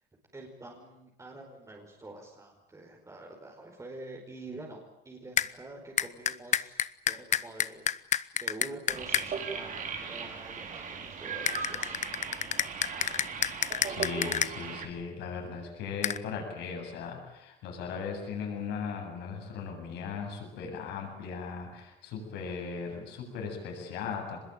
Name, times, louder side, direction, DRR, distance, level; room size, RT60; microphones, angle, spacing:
voice 1, 0.3-6.8 7.0-8.1 8.4-12.0, right 2 dB, 20° right, 0 dB, 5.1 m, -46 dB
sound 1, 5.4-5.5 6.0-9.3 11.5-14.5 16.0-16.2, left 9 dB, 45° left, 0.9 m, -28 dB
sound 2, 8.9-14.9, right 6 dB, 50° right, 4.4 m, -38 dB
voice 2, 13.6-24.4, left 5 dB, 85° left, 2 dB, 7.9 m, -38 dB
24.5 x 21.0 x 9.0 m, 0.87 s
cardioid pair, 110°, 17 cm